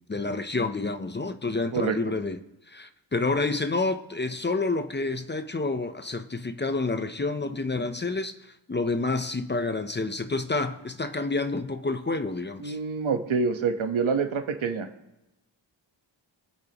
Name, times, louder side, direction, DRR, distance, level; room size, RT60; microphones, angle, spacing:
voice 1, 0.1-2.4 2.7-12.8, left 3 dB, 25° left, 0.7 m, -29 dB
voice 2, 1.7-2.1 12.6-14.9, right 5 dB, 80° right, 1.3 m, -27 dB
23.0 x 8.6 x 3.0 m
wide cardioid pair, 105°, 47 cm